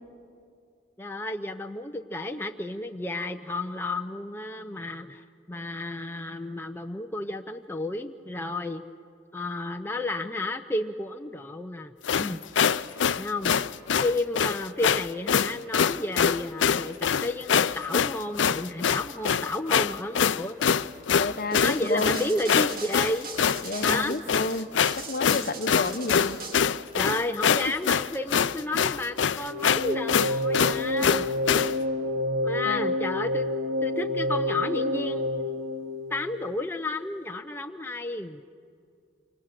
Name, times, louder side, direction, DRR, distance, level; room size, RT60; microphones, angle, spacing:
voice 1, 1.0-8.9 9.3-12.4 13.2-13.6 14.0-20.6 21.5-23.3 23.8-24.2 27.0-31.3 32.4-33.4 33.8-35.6 36.1-38.4, left 2 dB, 10° left, 4 dB, 0.6 m, -32 dB
sound 1, 12.0-31.8, left 7 dB, 90° left, 0.5 m, -24 dB
voice 2, 21.1-22.3 23.6-24.7 25.1-26.4 32.6-32.8, left 2 dB, 50° left, 10 dB, 1.0 m, -30 dB
sound 2, 21.5-26.6, right 4 dB, 50° right, 2.1 m, -40 dB
sound 3, 29.4-36.6, left 1 dB, 75° right, 1.5 m, -29 dB
28.0 x 25.5 x 6.7 m, 2.3 s
head